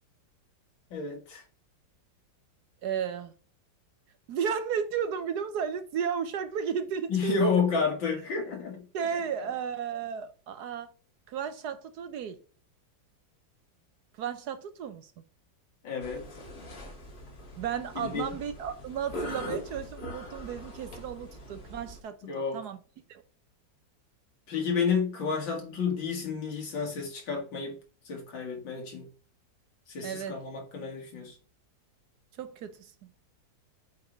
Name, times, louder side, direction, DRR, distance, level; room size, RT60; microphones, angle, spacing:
voice 1, 0.9-1.4 7.1-8.8 15.8-16.3 18.0-18.3 22.2-22.6 24.5-27.8 28.0-29.1 29.9-31.3, left 5 dB, 85° left, 2.8 m, -30 dB
voice 2, 2.8-3.3 4.3-7.3 8.9-10.9 11.3-12.4 14.2-15.1 17.6-22.2 22.5-22.8 23.1-23.2 30.0-30.4 32.4-32.9, right 7 dB, 65° right, 1.1 m, -33 dB
sound 1, 16.0-22.0, left 1 dB, 55° left, 2.1 m, -42 dB
8.2 x 3.4 x 4.1 m
omnidirectional pair, 2.0 m